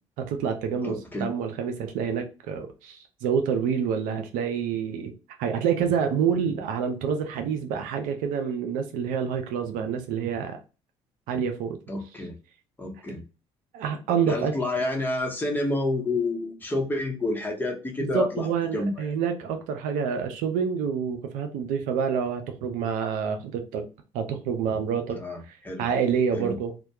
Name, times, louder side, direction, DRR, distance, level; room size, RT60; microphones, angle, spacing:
voice 1, 0.2-5.1 5.4-10.6 11.3-11.8 13.7-14.5 18.0-23.9 24.1-25.2 25.4-26.7, right 7 dB, 75° right, 6 dB, 0.5 m, -27 dB
voice 2, 0.8-1.3 11.9-12.4 12.8-13.2 14.3-19.1 25.1-25.9 26.3-26.6, left 2 dB, 15° left, 1 dB, 0.9 m, -29 dB
2.2 x 2.1 x 2.8 m, 0.31 s
hypercardioid pair, 60°, 14 cm